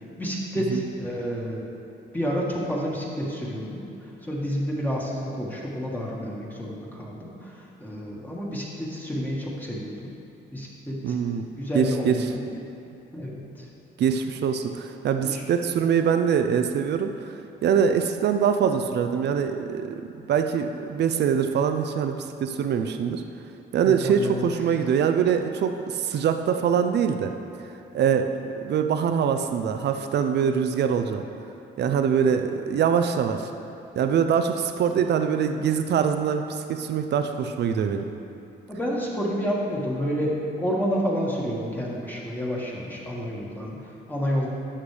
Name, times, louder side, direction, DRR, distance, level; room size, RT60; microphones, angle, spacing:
voice 1, 0.2-1.6 2.1-10.1 10.5-11.2 11.6-12.4 13.1-13.7 15.2-15.4 23.8-24.7 38.7-44.5, equal, 10° left, -5 dB, 1.7 m, -29 dB
voice 2, 11.0-11.5 11.7-12.2 14.0-23.2 23.7-27.3 27.9-31.2 31.8-33.5 34.0-38.0, right 7 dB, 60° right, 7 dB, 0.6 m, -24 dB
11.5 x 6.5 x 3.4 m, 2.8 s
cardioid pair, 90°, 20 cm